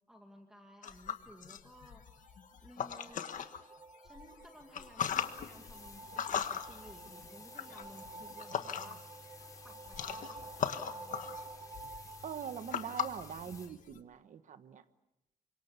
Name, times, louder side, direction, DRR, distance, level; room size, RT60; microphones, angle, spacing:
voice 1, 0.1-2.0 2.6-3.4 4.0-11.5, equal, 5° right, 2 dB, 2.2 m, -57 dB
sound 1, 0.8-3.6 4.1-9.1 9.4-14.0, left 8 dB, 60° left, 1.6 m, -39 dB
sound 2, 1.7-13.4, right 3 dB, 25° right, 1.2 m, -51 dB
sound 3, 5.0-13.7, left 3 dB, 25° left, 4.2 m, -54 dB
voice 2, 12.2-14.8, right 8 dB, 60° right, 10 dB, 1.3 m, -43 dB
28.5 x 25.5 x 6.9 m, 0.87 s
wide cardioid pair, 165°, 15 cm